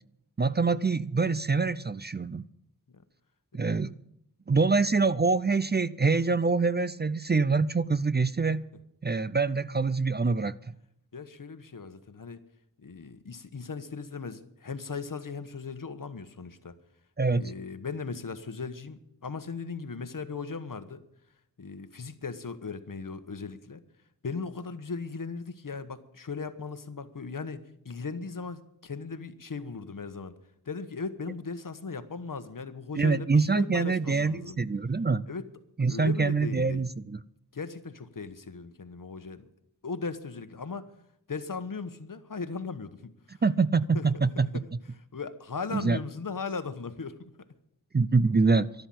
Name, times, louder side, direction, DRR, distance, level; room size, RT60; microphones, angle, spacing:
voice 1, 0.4-2.4 3.5-3.9 4.5-8.7 9.0-10.5 17.2-17.5 32.9-35.2 35.8-37.2 43.4-44.6 45.7-46.0 47.9-48.7, right 4 dB, 30° right, 0.5 m, -25 dB
voice 2, 11.1-12.4 12.8-16.8 17.3-21.0 21.6-23.8 24.2-30.4 30.6-34.6 35.3-35.4 35.9-36.9 37.5-39.5 39.8-40.9 41.3-43.4 43.9-44.6 45.1-47.3, left 4 dB, 65° left, 1.2 m, -38 dB
12.5 x 12.0 x 7.8 m
wide cardioid pair, 65°, 36 cm